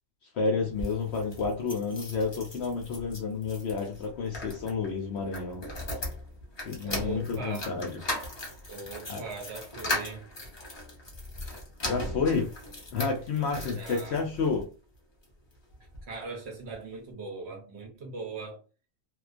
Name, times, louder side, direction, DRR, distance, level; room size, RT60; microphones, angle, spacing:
voice 1, 0.3-5.6 6.6-8.0 9.1-9.2 11.8-12.5 12.9-14.7, left 4 dB, 65° left, 0.7 m, -30 dB
sound 1, 0.6-14.6 15.2-16.1 16.4-16.5 16.7-16.8, left 1 dB, 35° left, 0.4 m, -38 dB
voice 2, 6.8-7.7 8.7-10.3 13.7-14.2 16.1-18.6, right 3 dB, 60° right, 0.9 m, -40 dB
2.4 x 2.2 x 2.4 m
omnidirectional pair, 1.4 m